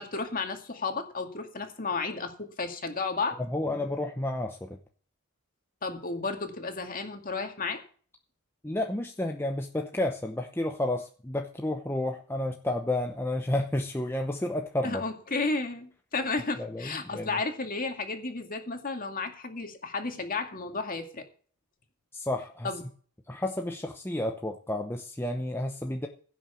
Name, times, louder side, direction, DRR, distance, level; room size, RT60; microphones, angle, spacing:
voice 1, 0.0-3.4 5.8-7.8 14.8-21.2 22.6-22.8, left 3 dB, 40° left, 5 dB, 2.2 m, -33 dB
voice 2, 3.5-4.8 8.6-15.0 16.6-17.4 22.1-22.7 23.3-26.1, left 1 dB, 10° left, 3 dB, 0.8 m, -31 dB
16.0 x 6.2 x 7.0 m, 0.43 s
head